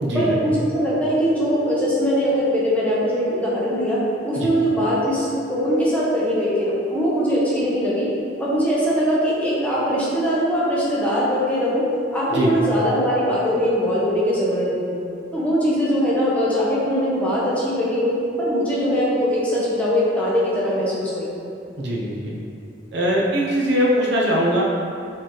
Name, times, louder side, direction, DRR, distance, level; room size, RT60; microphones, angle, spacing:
voice 1, 0.1-4.0 4.2-8.1 8.4-11.8 12.1-15.0 15.3-21.3, equal, 10° left, -8 dB, 0.9 m, -21 dB
voice 2, 21.8-22.3 22.9-24.6, equal, 70° right, -4 dB, 0.7 m, -21 dB
4.2 x 4.0 x 3.1 m, 2.6 s
head